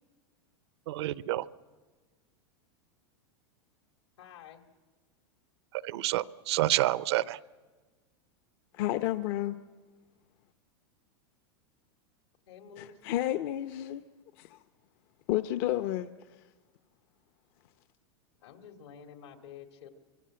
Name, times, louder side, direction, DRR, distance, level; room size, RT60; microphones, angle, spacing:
voice 1, 0.9-1.5 5.7-7.4, right 16 dB, 70° right, 17 dB, 0.7 m, -29 dB
voice 2, 4.2-4.6 12.5-13.0 18.4-19.9, left 8 dB, 80° left, 6 dB, 2.7 m, -49 dB
voice 3, 8.7-9.6 12.8-14.0 14.4-14.6 15.3-16.4, left 14 dB, 55° left, 11 dB, 0.8 m, -31 dB
25.0 x 23.5 x 7.7 m, 1.3 s
supercardioid pair, 135°, 14 cm